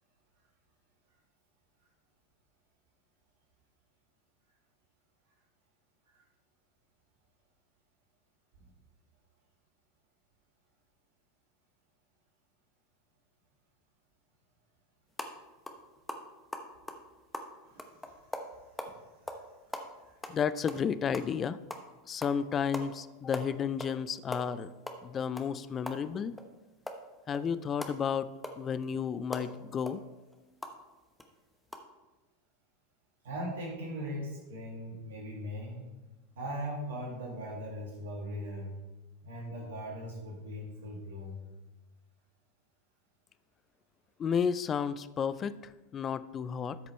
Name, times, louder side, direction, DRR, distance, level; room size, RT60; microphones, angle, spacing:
sound 1, 15.1-15.3 15.7-15.8 16.1-18.9 19.3-19.5 19.7-21.4 21.7-21.9 22.2-22.4 22.7-22.9 23.1-24.0 24.2-26.5 26.9-30.8 31.2-31.3 31.7-31.8, left 1 dB, 10° left, 0.9 m, -41 dB
voice 1, 17.6-19.0 33.2-35.9 36.4-38.7 39.2-41.4, equal, 75° right, -2 dB, 1.8 m, -40 dB
voice 2, 20.3-21.6 22.1-24.7 25.0-26.3 27.3-28.3 28.6-30.0 44.2-46.8, left 7 dB, 30° left, 15 dB, 0.4 m, -32 dB
12.5 x 5.1 x 3.2 m, 1.1 s
hypercardioid pair, 90°, 0 cm